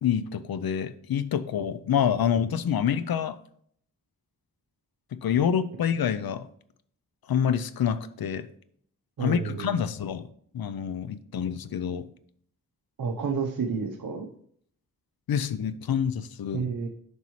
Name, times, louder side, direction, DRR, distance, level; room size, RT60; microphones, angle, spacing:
voice 1, 0.0-3.4 5.2-6.5 7.3-8.5 9.2-10.3 10.5-12.1 15.3-16.6, left 8 dB, 90° left, 14 dB, 0.6 m, -27 dB
voice 2, 9.2-9.8 13.0-14.3 16.5-16.9, right 5 dB, 75° right, 2 dB, 0.9 m, -30 dB
9.5 x 5.5 x 3.1 m, 0.63 s
wide cardioid pair, 85°, 35 cm